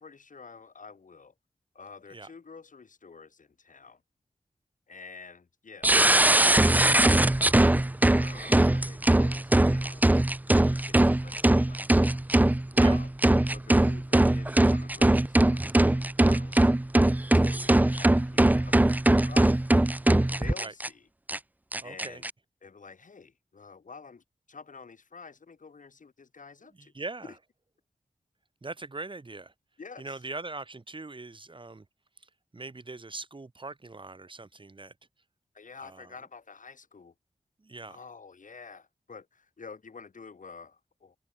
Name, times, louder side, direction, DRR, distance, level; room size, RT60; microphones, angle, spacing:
voice 1, 0.0-1.3 1.7-4.0 4.9-7.2 8.1-10.0 10.7-12.2 12.8-13.1 13.5-16.7 17.3-19.9 20.4-21.1 21.8-22.3 22.6-26.9 29.8-30.2 35.5-37.1 37.9-41.2, left 5 dB, 75° left, 6.7 m, -49 dB
sound 1, 5.8-20.9 21.3-21.4 21.7-22.3, right 1 dB, 10° right, 0.5 m, -21 dB
voice 2, 21.8-22.2 26.8-27.3 28.6-29.5 30.0-31.9 32.2-34.9 35.8-36.1 37.6-38.0, right 3 dB, 40° right, 2.4 m, -41 dB
wide cardioid pair, 80°, 13 cm